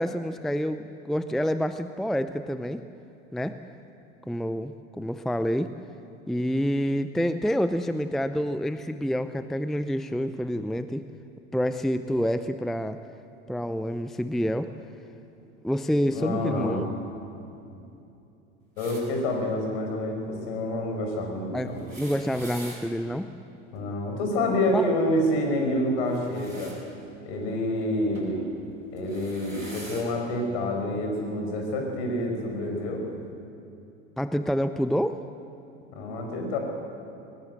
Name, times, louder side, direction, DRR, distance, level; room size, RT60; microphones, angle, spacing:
voice 1, 0.0-2.8 3.3-3.6 4.3-5.7 6.3-11.0 11.5-13.0 13.5-14.7 15.6-16.9 21.5-23.3 24.7-24.9 34.2-35.2, equal, ahead, 11 dB, 0.6 m, -28 dB
voice 2, 16.1-16.9 18.8-21.8 23.7-26.8 27.2-28.4 28.9-33.0 35.9-36.6, left 1 dB, 55° left, 3 dB, 6.2 m, -28 dB
sound 1, 18.8-19.0 21.7-22.8 26.0-26.8 28.1-28.4 29.0-30.1 31.1-31.2 32.4-32.5, right 1 dB, 85° right, 7.0 m, -44 dB
22.5 x 19.0 x 8.5 m, 2.7 s
figure-of-eight pair, 85°, 38 cm